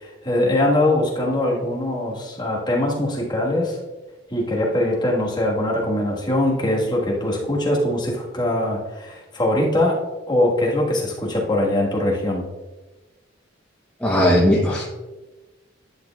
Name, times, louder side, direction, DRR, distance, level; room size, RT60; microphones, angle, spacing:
voice 1, 0.0-3.8 4.3-10.0 10.3-12.4, left 1 dB, 25° left, -3 dB, 1.4 m, -22 dB
voice 2, 14.0-14.8, left 1 dB, 5° left, -5 dB, 0.8 m, -17 dB
10.5 x 6.3 x 2.3 m, 1.2 s
head